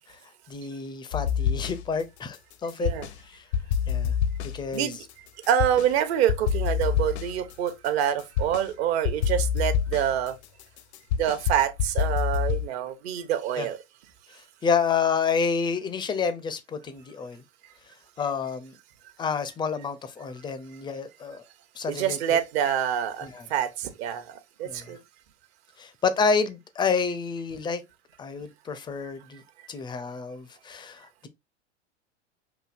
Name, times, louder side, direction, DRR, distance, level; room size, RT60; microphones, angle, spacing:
voice 1, 0.5-2.9 3.2-3.4 3.9-4.1 4.5-4.9 13.6-13.7 14.6-17.4 18.2-18.8 19.2-21.4 21.8-22.2 23.2-23.5 24.6-24.9 25.8-27.8 28.2-29.4 29.7-31.3, left 5 dB, 15° left, 0.4 m, -29 dB
sound 1, 1.1-2.0 2.3-3.2 3.5-5.9 6.3-8.7 9.0-12.7, left 8 dB, 65° left, 0.6 m, -27 dB
voice 2, 4.7-10.4 11.2-13.8 21.9-25.0 29.0-29.1, right 10 dB, 60° right, 1.0 m, -26 dB
5.9 x 2.6 x 2.4 m
hypercardioid pair, 100°, 36 cm